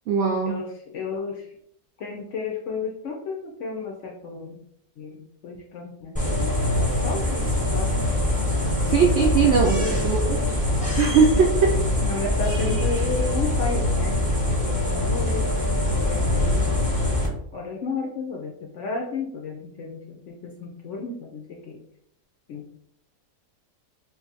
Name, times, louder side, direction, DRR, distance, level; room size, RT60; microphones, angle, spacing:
voice 1, 0.1-0.6 8.9-10.4 11.0-11.7, right 5 dB, 75° right, -2 dB, 0.6 m, -20 dB
voice 2, 0.9-1.4 2.0-4.6 5.0-7.5 7.7-8.1 8.7-10.0 10.8-11.0 11.4-11.5 12.0-14.1 14.7-15.5 15.8-16.8 17.5-21.8 22.5-22.6, left 4 dB, 65° left, 0 dB, 0.7 m, -33 dB
sound 1, 6.2-17.3, left 1 dB, 5° left, 0.6 m, -23 dB
2.6 x 2.5 x 4.0 m, 0.71 s
omnidirectional pair, 1.7 m